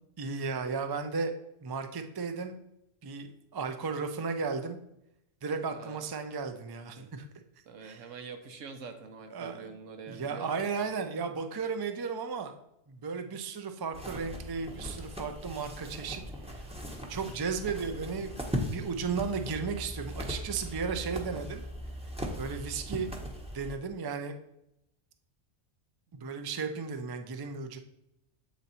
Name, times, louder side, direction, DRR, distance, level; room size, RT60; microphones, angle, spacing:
voice 1, 0.2-1.3 1.6-2.6 3.0-4.8 5.4-7.3 7.8-8.0 9.3-9.8 10.1-12.5 12.9-16.2 16.5-16.7 17.1-18.3 18.7-21.6 22.4-23.1 23.5-24.3 26.1-27.8, right 5 dB, 40° right, 7 dB, 0.3 m, -34 dB
voice 2, 5.7-6.0 7.7-10.9, right 5 dB, 80° right, 7 dB, 1.2 m, -45 dB
sound 1, 13.9-23.8, equal, 5° right, 0.9 m, -39 dB
7.9 x 4.0 x 4.2 m, 0.83 s
omnidirectional pair, 1.3 m